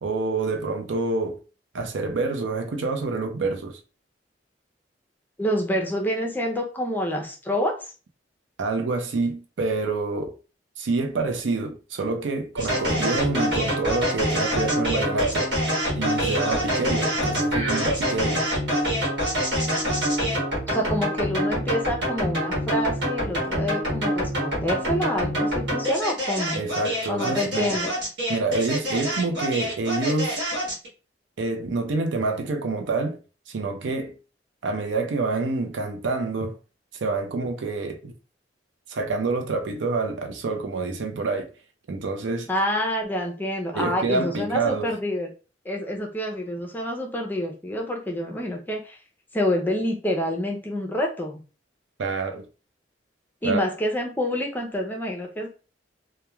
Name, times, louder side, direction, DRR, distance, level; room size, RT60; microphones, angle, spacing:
voice 1, 0.0-1.4 1.7-3.8 8.6-10.3 10.8-15.5 16.0-18.5 26.5-27.8 28.3-30.4 31.4-33.2 33.5-34.1 34.6-36.5 37.0-38.1 38.9-41.5 41.9-42.5 43.7-44.9 52.0-52.5 53.4-53.6, right 3 dB, 85° right, 0.5 m, -27 dB
voice 2, 5.4-7.9 20.7-26.7 27.1-27.9 42.5-45.3 45.6-49.0 49.3-51.4 53.4-55.5, left 1 dB, 10° left, 0.5 m, -27 dB
sound 1, 12.6-30.9, equal, 70° right, 1.2 m, -26 dB
3.0 x 2.2 x 2.3 m
head